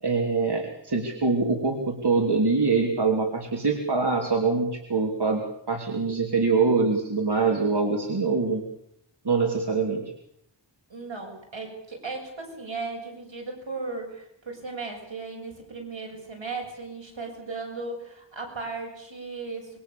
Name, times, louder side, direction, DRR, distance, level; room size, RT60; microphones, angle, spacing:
voice 1, 0.0-8.7 9.2-10.1, right 4 dB, 60° right, 2 dB, 3.2 m, -24 dB
voice 2, 10.9-19.8, right 3 dB, 80° right, 2 dB, 7.4 m, -36 dB
26.5 x 22.5 x 7.1 m, 0.72 s
wide cardioid pair, 55°, 44 cm